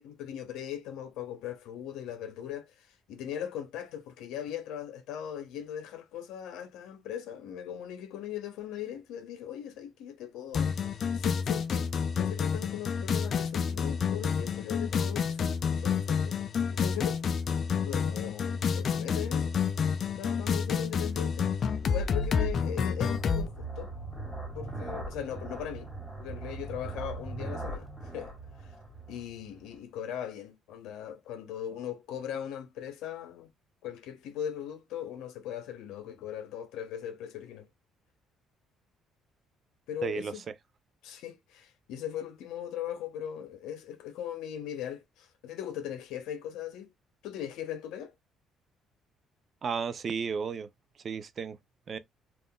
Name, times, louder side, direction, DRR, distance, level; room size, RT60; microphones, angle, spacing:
voice 1, 0.0-10.7 11.1-15.5 15.8-16.4 16.7-17.2 17.8-19.5 20.2-23.9 24.6-25.9 26.2-28.3 28.6-28.7 29.1-33.5 33.8-37.6 39.9-40.4 41.0-46.9 47.2-48.1, left 10 dB, 80° left, 0.7 m, -39 dB
sound 1, 10.5-23.5, left 6 dB, 45° left, 0.4 m, -29 dB
sound 2, 20.2-29.8, right 2 dB, ahead, 1.9 m, -41 dB
voice 2, 40.0-40.3 49.6-50.7 51.0-51.6 51.9-52.0, right 6 dB, 40° right, 0.4 m, -33 dB
3.6 x 2.5 x 2.2 m
cardioid pair, 105°, 0 cm